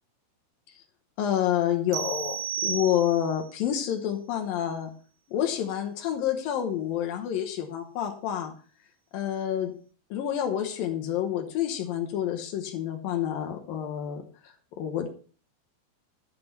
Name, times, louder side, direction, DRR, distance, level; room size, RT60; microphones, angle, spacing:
voice 1, 1.2-4.9 5.3-8.5 9.1-9.7 10.1-15.1, left 10 dB, 75° left, 4 dB, 2.2 m, -28 dB
sound 1, 1.9-3.5, right 8 dB, 90° right, 3.2 m, -33 dB
12.0 x 6.0 x 5.8 m, 0.40 s
omnidirectional pair, 5.4 m